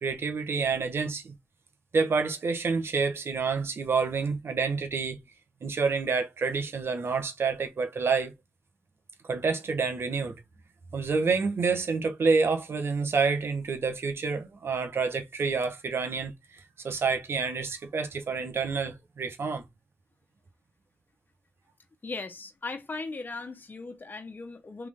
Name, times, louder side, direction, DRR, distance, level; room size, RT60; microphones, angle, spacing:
voice 1, 0.0-1.3 1.9-5.2 5.6-8.3 9.2-10.3 10.9-19.6, right 4 dB, 75° right, 1.1 m, -28 dB
voice 2, 22.0-24.9, left 3 dB, 50° left, 1.0 m, -38 dB
3.6 x 3.1 x 3.5 m
cardioid pair, 40°, 4 cm